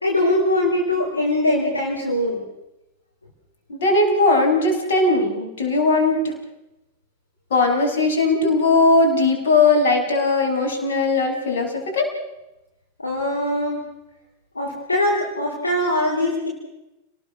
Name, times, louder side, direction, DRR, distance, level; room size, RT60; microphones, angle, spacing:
voice 1, 0.0-2.4 13.0-13.8 14.5-16.5, left 1 dB, 80° left, -1 dB, 4.5 m, -22 dB
voice 2, 3.7-6.3 7.5-12.1, left 3 dB, 60° left, 3 dB, 6.4 m, -19 dB
29.5 x 19.5 x 6.1 m, 0.92 s
figure-of-eight pair, 90°, 0 cm